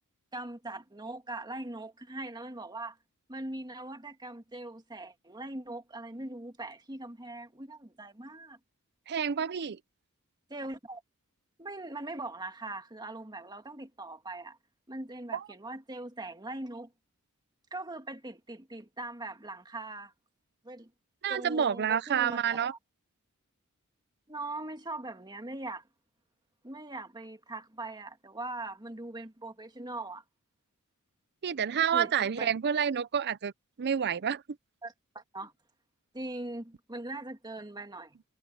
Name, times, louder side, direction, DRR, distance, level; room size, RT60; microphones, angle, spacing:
voice 1, 0.3-3.0 3.3-8.6 10.5-11.0 11.6-14.6 14.9-16.9 17.7-20.1 20.6-20.9 21.3-22.7 24.3-25.8 26.6-30.2 31.9-32.5 34.8-35.5 36.1-38.2, right 2 dB, 20° right, 2.0 m, -41 dB
voice 2, 9.1-9.8 15.3-15.4 21.2-22.7 31.4-33.5 33.8-34.4, right 8 dB, 50° right, 0.5 m, -28 dB
head